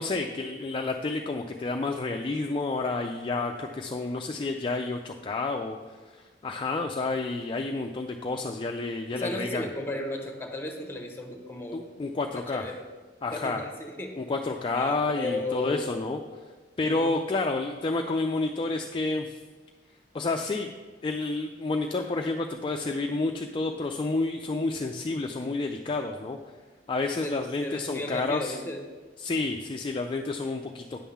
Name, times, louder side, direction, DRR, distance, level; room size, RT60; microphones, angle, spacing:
voice 1, 0.0-5.8 6.1-9.7 11.7-12.7 13.2-13.6 14.2-16.2 16.8-19.4 20.1-20.7 21.0-26.4 26.9-28.6 29.2-31.0, left 3 dB, 30° left, 4 dB, 0.4 m, -30 dB
voice 2, 9.1-11.9 12.3-12.8 13.3-14.2 14.7-16.0 16.8-17.1 27.2-28.8, left 2 dB, 15° left, 3 dB, 1.1 m, -35 dB
9.1 x 3.7 x 7.0 m, 1.4 s
head